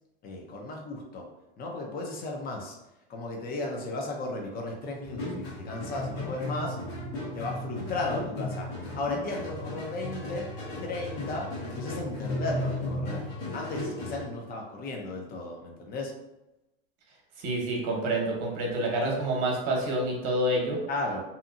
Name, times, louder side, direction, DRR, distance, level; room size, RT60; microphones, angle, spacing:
voice 1, 0.2-1.2 1.6-2.8 3.1-6.8 7.3-8.7 9.0-10.5 10.8-13.3 13.5-16.1 20.9-21.2, left 2 dB, 30° left, 1 dB, 0.7 m, -35 dB
sound 1, 5.0-14.2, left 1 dB, 65° left, 1.2 m, -35 dB
voice 2, 17.4-20.8, right 1 dB, 50° right, -1 dB, 1.1 m, -28 dB
2.8 x 2.5 x 2.5 m, 0.95 s
hypercardioid pair, 115°, 30 cm